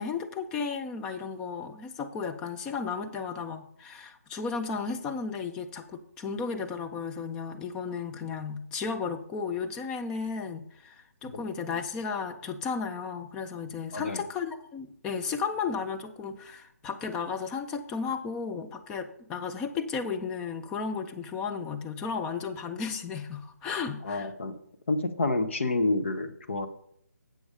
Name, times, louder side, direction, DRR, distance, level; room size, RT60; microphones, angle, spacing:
voice 1, 0.0-24.3, left 5 dB, 10° left, 6 dB, 0.4 m, -34 dB
voice 2, 13.9-14.2 24.0-24.5 24.9-26.7, left 2 dB, 45° left, 7 dB, 1.0 m, -29 dB
8.0 x 7.1 x 4.9 m, 0.68 s
figure-of-eight pair, 150°, 9 cm